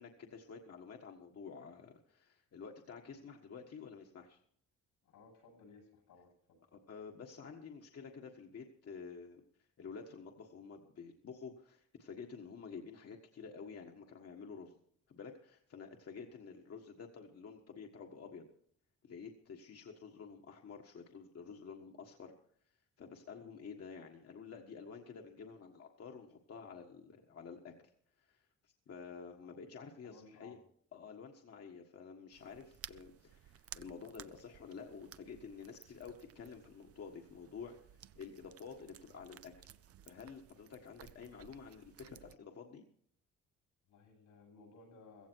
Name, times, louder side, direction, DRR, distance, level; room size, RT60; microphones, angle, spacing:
voice 1, 0.0-4.4 6.7-14.8 15.1-18.5 19.0-22.3 23.0-27.7 28.2-30.6 30.9-39.7 40.0-42.8, left 5 dB, 55° left, 2 dB, 1.6 m, -50 dB
voice 2, 5.0-6.6 16.3-16.5 29.4-29.6 30.0-30.6 43.9-45.3, left 4 dB, 90° left, 2 dB, 7.9 m, -60 dB
sound 1, 32.3-42.4, right 10 dB, 50° right, 0.6 m, -57 dB
16.0 x 15.0 x 4.7 m, 0.63 s
cardioid pair, 90°, 30 cm